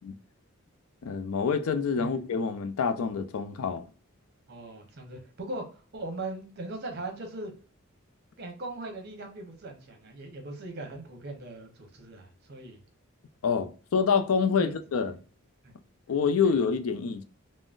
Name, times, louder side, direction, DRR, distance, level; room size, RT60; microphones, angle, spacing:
voice 1, 1.0-3.9 13.4-15.2 16.1-17.2, left 5 dB, 80° left, 0.4 m, -27 dB
voice 2, 4.5-7.5 8.4-12.8 14.6-14.7 15.6-15.7 16.4-16.5, right 2 dB, 50° right, 0.8 m, -40 dB
3.7 x 2.0 x 2.4 m
head